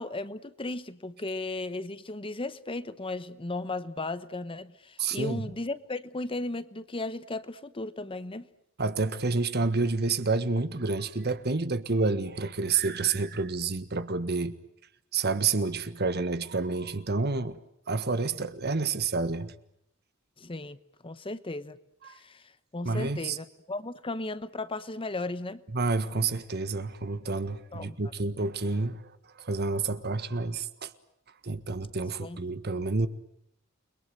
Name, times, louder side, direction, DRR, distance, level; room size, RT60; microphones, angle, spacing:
voice 1, 0.0-8.5 20.4-20.8 21.0-21.8 22.1-25.6 27.7-28.0 32.2-32.4, left 2 dB, 25° left, 1.0 m, -36 dB
voice 2, 5.0-5.5 8.8-14.5 15.1-17.6 17.9-19.5 22.0-22.1 22.8-23.4 25.7-29.0 29.4-30.9 31.4-33.1, right 3 dB, 50° right, 1.6 m, -29 dB
29.5 x 22.5 x 7.9 m
head